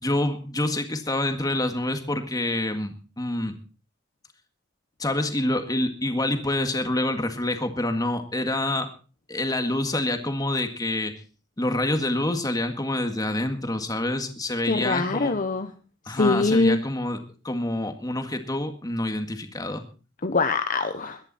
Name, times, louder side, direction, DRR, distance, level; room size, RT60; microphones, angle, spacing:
voice 1, 0.0-3.6 5.0-8.9 9.3-11.1 11.6-15.4 16.1-19.8, left 1 dB, 20° left, 7 dB, 1.8 m, -27 dB
voice 2, 14.6-15.7 16.1-16.8 20.2-21.2, left 3 dB, 45° left, 8 dB, 0.9 m, -23 dB
21.5 x 10.5 x 4.2 m, 0.36 s
head